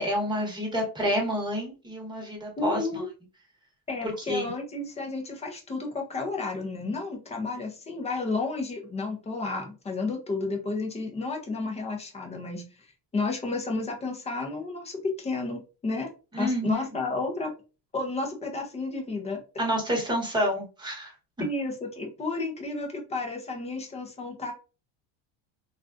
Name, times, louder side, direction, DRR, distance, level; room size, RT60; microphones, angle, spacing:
voice 1, 0.0-2.8 4.3-4.5 16.3-16.8 19.6-21.1, equal, 10° right, -2 dB, 0.9 m, -28 dB
voice 2, 2.6-3.1 3.9-12.6 13.1-16.1 16.4-17.5 17.9-19.4 21.4-24.5, left 3 dB, 15° left, 2 dB, 0.4 m, -32 dB
3.6 x 2.4 x 2.4 m, 0.33 s
cardioid pair, 150°, 50 cm